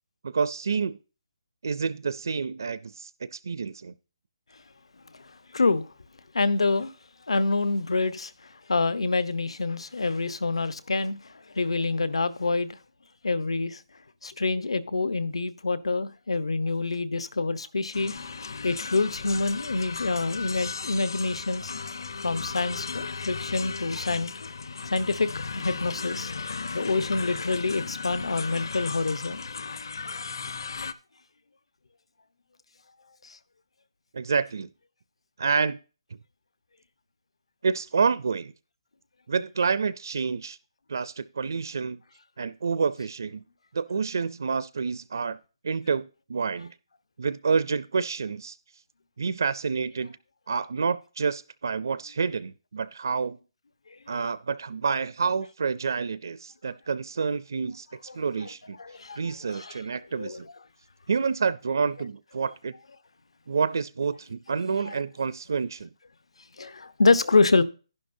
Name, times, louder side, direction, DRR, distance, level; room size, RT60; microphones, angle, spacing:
voice 1, 0.2-1.0 1.6-3.9 34.1-34.7 35.4-35.8 37.6-38.5 39.3-40.6 40.9-42.0 42.4-43.4 43.7-45.4 45.6-46.0 46.3-46.7 47.2-48.6 49.2-50.2 50.5-53.4 54.1-57.9 58.1-58.8 59.2-60.5 61.1-62.7 63.5-65.9, right 5 dB, 40° right, 0.4 m, -28 dB
voice 2, 5.1-5.9 6.3-6.9 7.3-12.8 13.2-13.8 14.2-18.1 18.6-21.7 22.2-24.5 24.9-25.3 25.5-26.3 26.7-29.4 33.2-33.4 58.1-58.2 58.8-59.8 60.2-60.4 64.9-65.0 66.6-67.6, left 3 dB, 80° left, 1.0 m, -26 dB
sound 1, 17.9-30.9, left 4 dB, 50° left, 0.6 m, -36 dB
11.0 x 10.5 x 2.7 m
hypercardioid pair, 180°, 3 cm